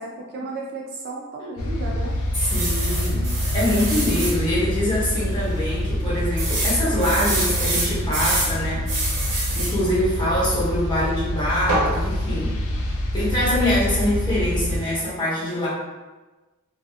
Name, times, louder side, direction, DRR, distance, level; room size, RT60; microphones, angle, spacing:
voice 1, 0.0-2.1, right 2 dB, 45° right, -1 dB, 0.3 m, -33 dB
sound 1, 1.6-14.8, left 1 dB, 65° left, 0.4 m, -26 dB
sound 2, 2.3-4.4 4.9-5.0 5.3-5.4 6.4-8.5 8.9-9.8 11.7-11.9, right 2 dB, 90° right, 0.9 m, -26 dB
voice 2, 2.5-3.3 3.5-9.2 9.5-12.6 13.1-15.7, left 1 dB, 20° left, -8 dB, 0.9 m, -24 dB
2.5 x 2.4 x 2.3 m, 1.2 s
head